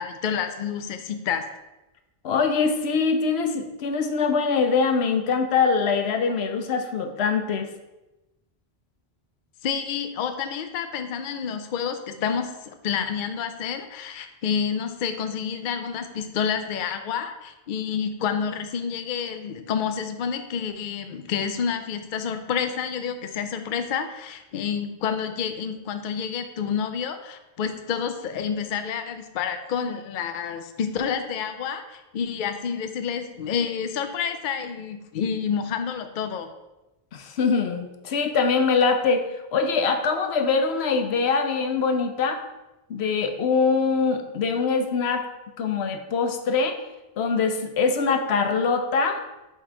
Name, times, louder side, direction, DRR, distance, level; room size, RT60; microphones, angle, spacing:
voice 1, 0.0-1.5 9.6-36.5, left 7 dB, 60° left, 8 dB, 0.6 m, -29 dB
voice 2, 2.2-7.7 37.1-42.4 42.9-45.2 45.6-46.7 47.2-49.2, left 5 dB, 85° left, 6 dB, 1.0 m, -23 dB
5.3 x 4.3 x 4.8 m, 1.0 s
omnidirectional pair, 1.0 m